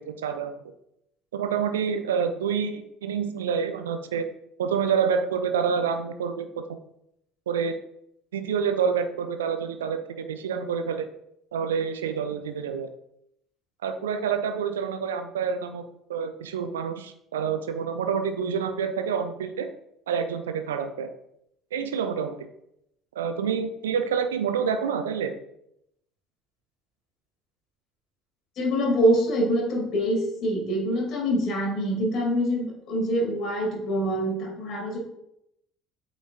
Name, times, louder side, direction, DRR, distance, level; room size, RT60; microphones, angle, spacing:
voice 1, 0.1-0.5 1.3-4.2 4.6-6.6 7.5-7.7 8.3-11.1 11.5-12.9 13.8-15.8 16.1-19.7 20.1-21.1 21.7-22.3 23.2-25.3, right 6 dB, 70° right, 8 dB, 0.5 m, -27 dB
voice 2, 28.6-35.0, equal, 45° left, -1 dB, 2.6 m, -25 dB
8.5 x 5.2 x 2.5 m, 0.78 s
figure-of-eight pair, 60°, 0 cm